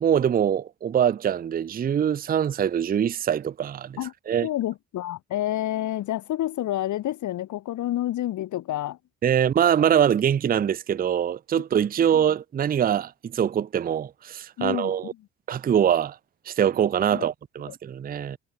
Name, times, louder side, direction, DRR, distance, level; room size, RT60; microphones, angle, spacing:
voice 1, 0.0-4.0 4.3-4.5 9.2-15.1 15.5-16.2 16.5-18.4, right 9 dB, 30° right, 0.5 m, -23 dB
voice 2, 4.4-9.0 14.6-14.9 17.1-17.3 17.7-17.8, left 13 dB, 75° left, 1.5 m, -29 dB
cardioid pair, 90°, 30 cm